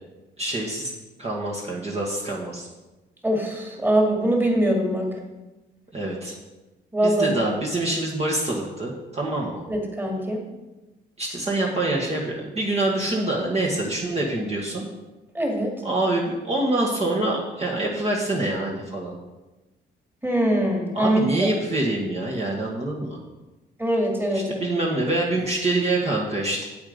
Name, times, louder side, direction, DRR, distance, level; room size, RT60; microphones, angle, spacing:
voice 1, 0.4-0.9 1.2-2.7 5.9-6.3 7.0-9.7 11.2-14.8 15.8-19.1 20.9-23.2 24.3-26.7, right 2 dB, 30° right, -2 dB, 1.8 m, -25 dB
voice 2, 3.2-5.1 6.9-7.3 9.7-10.4 15.3-15.7 20.2-21.5 23.8-24.7, right 1 dB, 10° right, 0 dB, 2.3 m, -22 dB
8.1 x 8.1 x 5.2 m, 1.1 s
cardioid pair, 90°, 20 cm